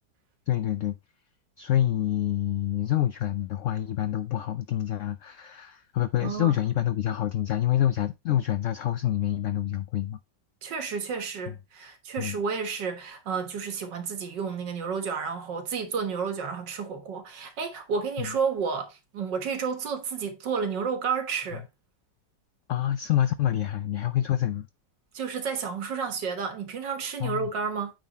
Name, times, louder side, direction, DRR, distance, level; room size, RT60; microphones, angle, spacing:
voice 1, 0.5-1.0 1.6-10.2 11.5-11.6 12.2-12.4 18.2-18.3 22.7-24.7 27.2-27.5, left 11 dB, 85° left, 0.6 m, -27 dB
voice 2, 6.2-6.6 10.6-21.6 25.1-27.9, right 5 dB, 85° right, 2.0 m, -31 dB
8.9 x 4.0 x 4.0 m
omnidirectional pair, 1.9 m